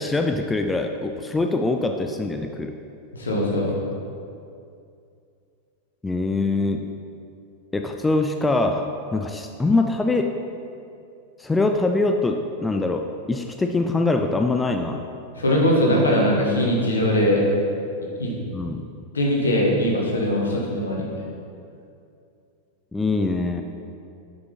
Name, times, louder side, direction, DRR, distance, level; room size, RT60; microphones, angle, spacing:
voice 1, 0.0-2.7 6.0-6.9 7.7-10.4 11.4-15.0 18.5-18.9 22.9-23.6, left 2 dB, 10° left, 5 dB, 0.4 m, -23 dB
voice 2, 3.1-3.7 15.4-17.4 18.2-18.3 19.1-21.1, equal, 70° left, -2 dB, 1.4 m, -21 dB
8.3 x 5.0 x 4.3 m, 2.5 s
figure-of-eight pair, 90°, 0 cm